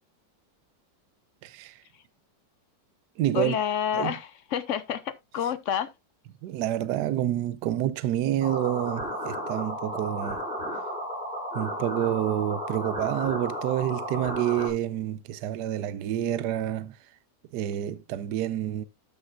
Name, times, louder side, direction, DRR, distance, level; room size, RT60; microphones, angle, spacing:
voice 1, 1.4-1.8 3.2-3.6 3.9-4.1 6.4-10.4 11.5-17.0 17.5-18.8, right 12 dB, 70° right, 1.2 m, -28 dB
voice 2, 3.3-5.9, left 9 dB, 60° left, 0.8 m, -29 dB
sound 1, 8.4-14.7, equal, 30° right, 4.3 m, -33 dB
12.5 x 6.9 x 2.5 m
omnidirectional pair, 1.9 m